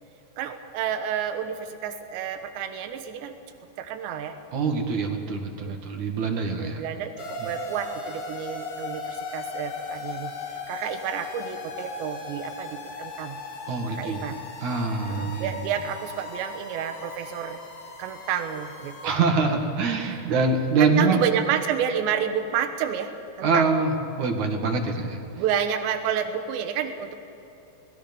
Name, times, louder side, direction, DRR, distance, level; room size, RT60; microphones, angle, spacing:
voice 1, 0.4-3.4 3.8-4.4 5.6-5.8 6.5-10.3 10.7-13.4 13.9-14.4 15.1-17.6 18.0-19.2 20.0-20.3 20.8-23.1 23.4-23.7 25.3-27.2, right 8 dB, 85° right, 7 dB, 3.4 m, -30 dB
voice 2, 4.5-6.8 7.4-7.5 13.7-14.2 14.6-15.7 19.0-21.2 23.4-25.2, right 4 dB, 50° right, 3 dB, 2.9 m, -24 dB
sound 1, 7.2-19.2, left 3 dB, 45° left, 2.1 m, -37 dB
27.5 x 20.5 x 5.5 m, 2.9 s
omnidirectional pair, 4.9 m